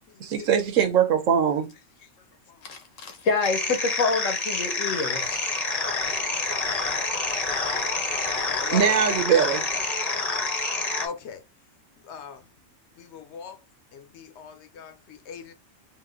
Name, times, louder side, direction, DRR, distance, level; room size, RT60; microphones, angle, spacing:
voice 1, 0.2-1.7 8.7-9.6, right 8 dB, 90° right, 1.2 m, -21 dB
voice 2, 2.7-5.4, left 4 dB, 90° left, 1.3 m, -27 dB
sound 1, 3.4-11.1, left 3 dB, 35° left, 0.8 m, -27 dB
voice 3, 8.6-9.0 11.0-11.4 12.1-12.4 13.1-13.5 14.2-14.9 15.3-15.5, left 6 dB, 65° left, 0.9 m, -38 dB
3.6 x 2.9 x 3.7 m
omnidirectional pair, 1.3 m